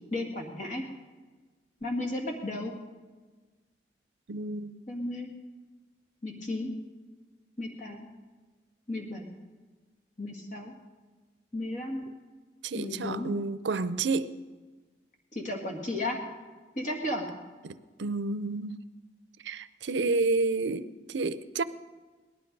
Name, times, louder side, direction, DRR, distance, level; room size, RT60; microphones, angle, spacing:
voice 1, 0.1-0.8 1.8-2.7 4.9-5.3 6.2-6.7 7.6-8.1 8.9-9.3 10.2-10.7 11.5-12.0 12.7-13.3 15.3-16.2 16.7-17.3, left 1 dB, 40° left, 2.0 m, -34 dB
voice 2, 4.3-4.9 12.6-14.3 17.6-18.8 19.4-21.6, right 3 dB, 80° right, 0.5 m, -30 dB
18.0 x 12.0 x 5.3 m
head